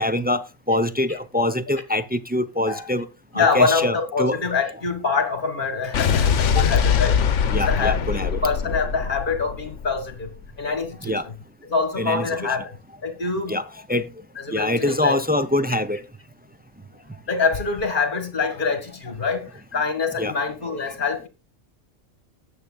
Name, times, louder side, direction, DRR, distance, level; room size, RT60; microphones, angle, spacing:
voice 1, 0.0-3.1 3.3-4.4 7.5-8.4 11.0-11.3 12.0-12.6 13.5-13.6 13.9-14.1 14.5-16.0 20.2-20.3, left 1 dB, 15° right, 0.3 m, -24 dB
voice 2, 3.3-7.2 7.5-10.3 10.6-11.3 11.7-12.8 13.0-13.6 14.4-15.2 17.3-21.3, left 4 dB, 40° left, 1.9 m, -25 dB
Explosion, 5.9-10.3, left 7 dB, 70° left, 1.2 m, -22 dB
19.0 x 7.3 x 2.3 m
omnidirectional pair, 1.3 m